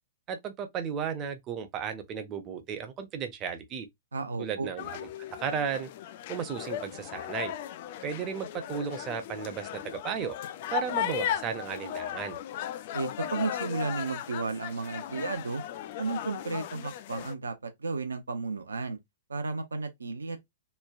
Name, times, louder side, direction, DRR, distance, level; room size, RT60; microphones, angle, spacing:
voice 1, 0.3-3.9 4.4-5.9 6.3-7.5 8.0-10.4 10.7-12.4, right 7 dB, 30° right, 0.6 m, -34 dB
voice 2, 4.1-4.7 12.9-15.6 16.0-19.0 19.3-20.4, right 4 dB, 80° right, 0.5 m, -33 dB
sound 1, 4.8-17.3, left 11 dB, 50° left, 0.3 m, -36 dB
3.1 x 2.1 x 2.4 m
figure-of-eight pair, 110°, 0 cm